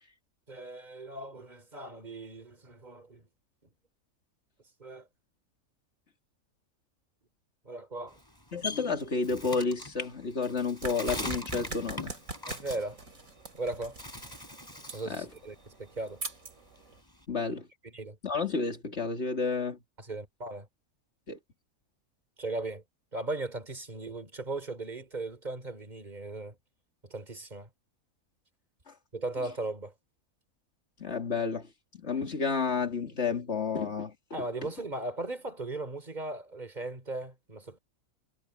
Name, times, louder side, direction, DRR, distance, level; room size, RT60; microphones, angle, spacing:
voice 1, 0.5-3.3 4.8-5.1 7.7-8.2 12.5-13.0 13.5-14.0 14.9-16.2 17.8-18.2 20.0-20.7 22.4-22.8 23.1-26.6 27.0-27.7 29.1-29.9 34.3-37.8, right 2 dB, 30° right, 3.7 m, -37 dB
Bird, 8.1-13.6 13.9-15.2 15.5-17.2, left 2 dB, 15° left, 4.7 m, -42 dB
voice 2, 8.5-12.1 15.1-15.3 17.3-17.7 18.2-19.8 21.3-21.4 28.9-29.0 31.0-34.1, left 4 dB, 50° left, 2.8 m, -31 dB
sound 1, 10.8-17.0, right 3 dB, 65° right, 3.7 m, -43 dB
omnidirectional pair, 1.5 m